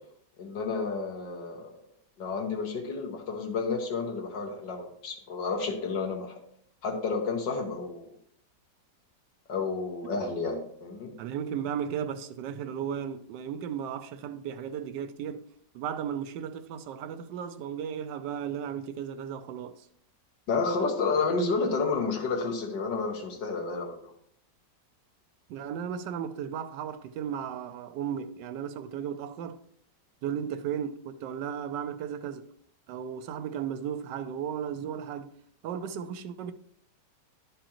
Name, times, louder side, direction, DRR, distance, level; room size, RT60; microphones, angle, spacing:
voice 1, 0.4-1.7 2.2-6.4 6.8-8.1 9.5-11.1 20.5-24.1, left 4 dB, 75° left, 1.9 m, -30 dB
voice 2, 11.2-15.5 15.7-19.9 25.5-29.6 30.2-32.5 32.9-35.3 35.6-36.5, right 8 dB, 75° right, 1.2 m, -35 dB
11.0 x 5.1 x 3.0 m
omnidirectional pair, 2.0 m